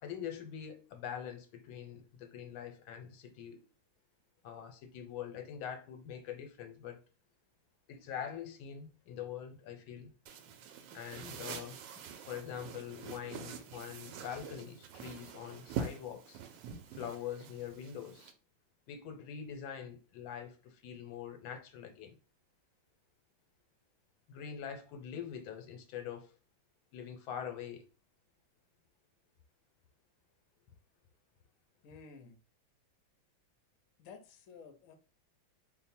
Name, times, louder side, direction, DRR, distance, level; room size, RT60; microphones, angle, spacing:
voice 1, 0.0-3.6 4.4-7.0 7.9-10.1 10.9-11.8 12.3-16.4 16.9-18.3 18.9-22.1 24.3-26.3 26.9-27.9, left 8 dB, 90° left, 1.5 m, -44 dB
sound 1, 10.3-18.3, right 6 dB, 75° right, 1.2 m, -45 dB
voice 2, 31.8-32.4 34.0-34.9, left 5 dB, 65° left, 0.8 m, -53 dB
3.2 x 2.1 x 4.2 m
omnidirectional pair, 2.1 m